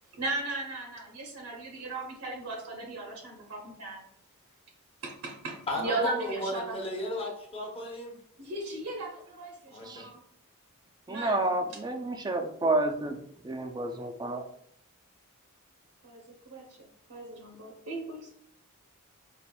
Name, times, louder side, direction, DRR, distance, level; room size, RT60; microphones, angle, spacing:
voice 1, 0.1-4.0 5.0-6.8 8.4-10.2 11.1-11.4 11.7-11.8 16.0-18.3, right 2 dB, 70° right, 0.7 m, -37 dB
voice 2, 5.7-8.1 9.7-10.0, left 1 dB, 25° left, 0.8 m, -34 dB
voice 3, 11.1-13.2 13.4-14.4, right 2 dB, 20° right, 0.4 m, -30 dB
5.4 x 2.5 x 2.2 m
head